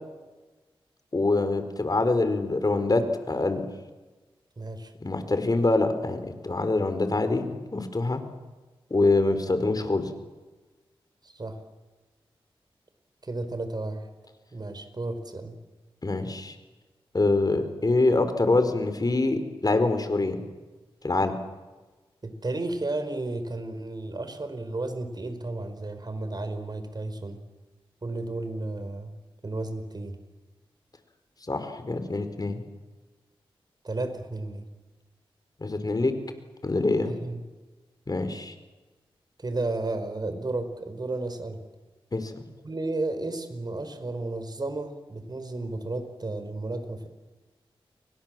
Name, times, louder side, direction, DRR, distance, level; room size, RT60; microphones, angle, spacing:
voice 1, 1.1-3.0 3.3-3.6 5.0-8.2 8.9-10.1 16.0-16.5 17.1-20.5 21.0-21.3 31.5-32.6 35.6-36.1 36.6-37.1 38.1-38.5 42.1-42.4, left 2 dB, 40° left, 9 dB, 4.6 m, -25 dB
voice 2, 4.6-4.9 11.2-11.6 13.2-14.1 14.5-15.6 22.2-27.4 28.0-29.1 29.4-30.2 33.8-34.7 37.0-37.4 39.4-41.6 42.6-47.1, right 2 dB, 45° right, 9 dB, 5.0 m, -33 dB
30.0 x 23.5 x 7.8 m, 1.2 s
cardioid pair, 45°, 10 cm